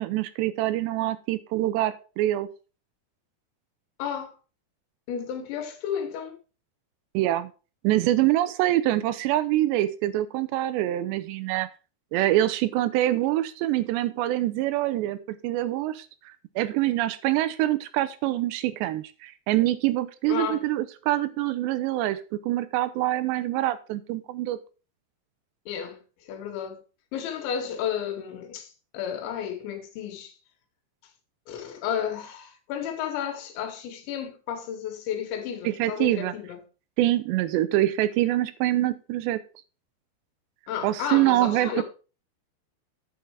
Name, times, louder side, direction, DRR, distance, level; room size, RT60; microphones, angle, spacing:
voice 1, 0.0-2.5 7.1-7.5 7.8-11.7 12.1-24.6 35.6-36.3 37.0-39.4 40.8-41.8, right 15 dB, 80° right, 2.7 m, -25 dB
voice 2, 4.0-4.4 5.1-6.4 20.3-20.6 25.7-26.8 27.1-30.3 31.5-36.6 40.7-41.8, left 8 dB, 85° left, 3.7 m, -32 dB
9.4 x 5.5 x 4.7 m
omnidirectional pair, 5.2 m